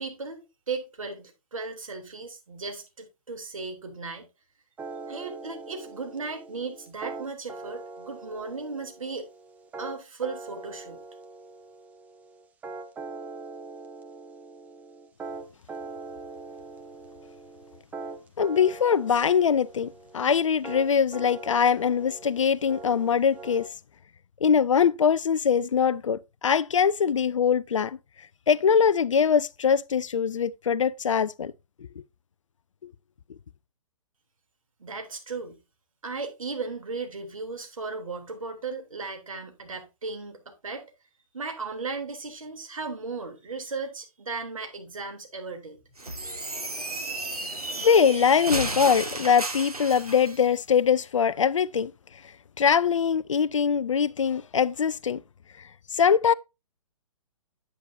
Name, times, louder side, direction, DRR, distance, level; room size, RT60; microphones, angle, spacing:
voice 1, 0.0-4.3 5.1-9.3 9.8-11.0 34.8-35.6 36.0-40.9 41.3-45.8, right 4 dB, 65° right, 3.0 m, -36 dB
sound 1, 4.8-23.7, right 3 dB, 10° right, 0.7 m, -42 dB
voice 2, 18.4-23.7 24.4-28.0 28.5-31.5 32.0-32.1 32.8-32.9 47.8-51.9 52.6-55.2 55.9-56.3, left 7 dB, 60° left, 0.5 m, -22 dB
sound 2, 46.0-50.4, right 2 dB, 80° right, 1.9 m, -33 dB
9.1 x 8.8 x 2.6 m
figure-of-eight pair, 125°, 19 cm